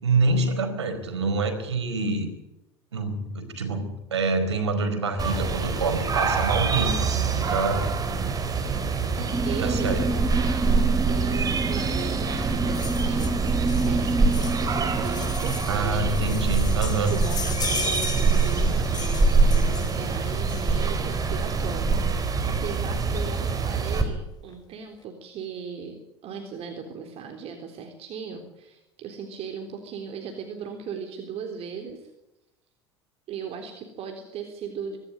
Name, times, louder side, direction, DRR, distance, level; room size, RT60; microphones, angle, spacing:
voice 1, 0.0-2.3 2.9-7.9 9.5-10.1 15.7-17.1, right 3 dB, 80° right, 7 dB, 4.4 m, -26 dB
sound 1, 5.2-24.0, right 4 dB, 25° right, 4.4 m, -25 dB
voice 2, 9.2-16.1 16.5-26.0 26.2-32.1 33.3-35.0, right 6 dB, 45° right, 4 dB, 3.6 m, -38 dB
sound 2, 9.3-17.2, right 2 dB, 10° right, 1.1 m, -30 dB
sound 3, 12.7-21.1 22.2-22.3 22.6-22.7 22.9-23.1 23.4-24.0 24.5-24.6, left 7 dB, 30° left, 2.3 m, -37 dB
25.0 x 13.0 x 9.6 m, 0.92 s
figure-of-eight pair, 70°, 14 cm